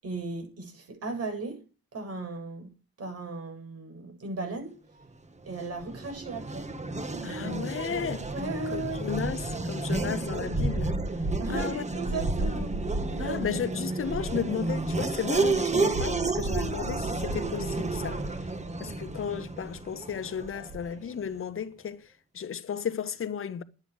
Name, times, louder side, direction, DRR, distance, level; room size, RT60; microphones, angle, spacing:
voice 1, 0.0-1.6 1.9-2.7 3.0-4.8 5.5-6.7 8.3-9.0 9.9-10.1 11.4-13.4, right 3 dB, 55° right, 8.0 m, -36 dB
Race car auto racing / Accelerating revving vroom, 5.4-21.1, right 2 dB, 25° right, 1.9 m, -31 dB
voice 2, 7.2-8.3 8.7-10.9 11.5-11.9 13.2-18.5 18.8-23.6, left 8 dB, 45° left, 1.3 m, -34 dB
11.0 x 9.0 x 6.4 m
cardioid pair, 90°, 30 cm